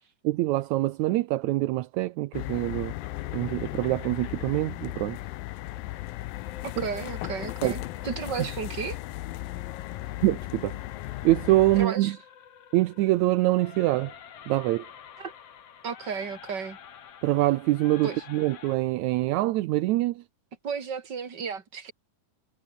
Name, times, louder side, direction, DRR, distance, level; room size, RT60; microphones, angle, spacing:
voice 1, 0.2-2.9 3.3-5.2 7.6-7.7 10.2-10.8 11.2-12.1 12.7-14.1 14.5-14.9 17.2-20.2, right 17 dB, 75° right, 1.7 m, -24 dB
sound 1, 2.3-11.9, left 17 dB, 80° left, 2.5 m, -36 dB
sound 2, 3.0-18.8, left 8 dB, 50° left, 2.6 m, -50 dB
voice 2, 6.6-9.0 11.8-12.2 15.2-15.3 15.8-16.8 18.0-18.2 20.6-21.9, right 6 dB, 30° right, 3.0 m, -33 dB
omnidirectional pair, 4.0 m